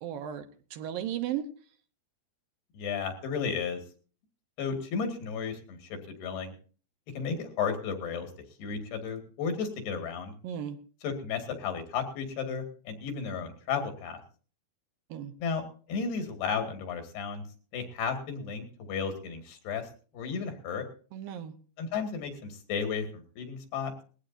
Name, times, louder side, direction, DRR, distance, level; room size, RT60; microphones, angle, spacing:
voice 1, 0.0-0.5 0.7-1.5 10.4-10.8 15.1-15.3 21.1-21.5, right 10 dB, 70° right, 8 dB, 2.6 m, -35 dB
voice 2, 2.7-3.8 4.6-6.5 7.2-8.3 8.6-10.3 11.0-14.2 15.4-15.6 15.9-17.4 17.7-19.9 20.1-20.9 21.8-23.9, left 6 dB, 85° left, 6 dB, 4.1 m, -33 dB
20.5 x 16.5 x 2.7 m, 0.40 s
omnidirectional pair, 4.5 m